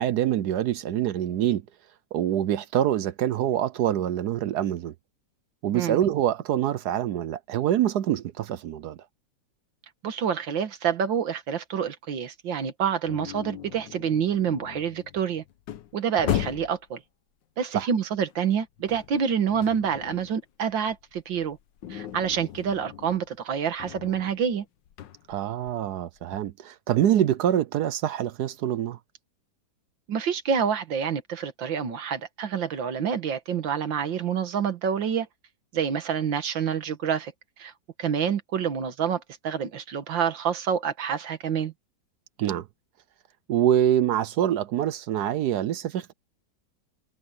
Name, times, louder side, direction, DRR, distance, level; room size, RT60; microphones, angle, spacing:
voice 1, 0.0-1.6 2.1-4.9 5.6-9.0 17.7-17.9 25.3-29.0 42.4-42.7 43.5-46.1, right 11 dB, 70° right, 1.1 m, -25 dB
voice 2, 10.0-15.4 15.9-17.0 17.6-21.6 21.9-24.7 30.1-35.3 35.7-37.3 37.6-37.7 38.0-41.7, right 7 dB, 85° right, 2.2 m, -27 dB
sound 1, 13.1-16.9 18.3-20.4 20.7-26.5, left 11 dB, 80° left, 1.6 m, -37 dB
omnidirectional pair, 2.0 m